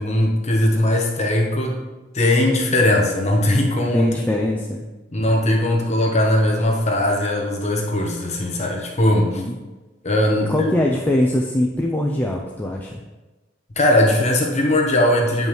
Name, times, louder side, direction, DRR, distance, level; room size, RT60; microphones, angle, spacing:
voice 1, 0.0-1.8 2.1-4.1 4.4-4.5 5.1-9.4 10.0-10.7 13.8-15.5, left 1 dB, 35° left, 0 dB, 0.9 m, -19 dB
voice 2, 3.9-4.9 9.2-9.6 10.4-13.0, left 1 dB, 10° left, 0 dB, 0.5 m, -22 dB
8.7 x 5.4 x 3.1 m, 1.2 s
head